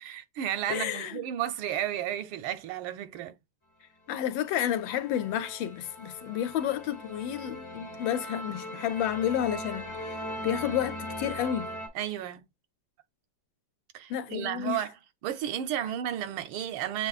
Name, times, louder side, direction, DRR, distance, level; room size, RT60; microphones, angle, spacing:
voice 1, 0.0-3.4 11.9-12.4 13.9-14.9 15.2-17.1, right 11 dB, 90° right, 1.5 m, -33 dB
voice 2, 0.7-1.2 4.1-10.2 10.4-11.8 14.1-14.8, left 10 dB, 75° left, 1.3 m, -31 dB
sound 1, 4.2-11.9, equal, 30° left, 0.5 m, -40 dB
7.0 x 2.8 x 2.3 m
omnidirectional pair, 2.2 m